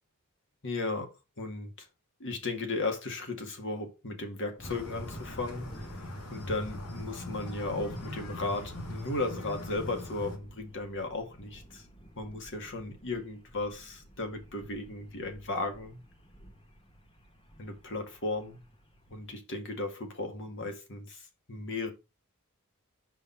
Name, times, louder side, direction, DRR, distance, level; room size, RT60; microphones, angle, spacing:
voice 1, 0.6-1.1 1.4-1.9 2.2-6.0 6.3-11.8 12.2-16.0 17.6-18.6 19.1-21.2 21.5-21.9, left 2 dB, 60° left, 2.0 m, -35 dB
sound 1, 4.6-10.4, left 1 dB, 80° left, 1.8 m, -41 dB
sound 2, 4.6-19.4, equal, 25° left, 1.2 m, -53 dB
5.2 x 5.0 x 5.8 m
head